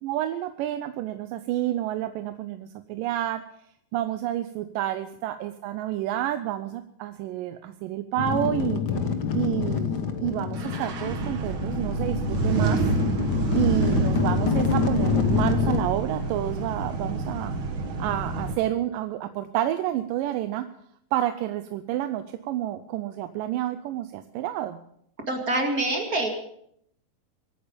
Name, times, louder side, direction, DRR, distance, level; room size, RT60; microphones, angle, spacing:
voice 1, 0.0-3.4 3.9-8.8 9.3-12.9 13.5-17.5 18.0-20.7 21.1-24.8, right 13 dB, 85° right, 9 dB, 2.4 m, -29 dB
sound 1, 8.2-15.8, left 6 dB, 70° left, 0.9 m, -27 dB
sound 2, 10.6-18.6, right 3 dB, 50° right, 1.6 m, -28 dB
voice 2, 25.3-26.3, right 2 dB, 35° right, 2 dB, 1.7 m, -25 dB
24.0 x 8.9 x 5.1 m, 0.71 s
omnidirectional pair, 3.8 m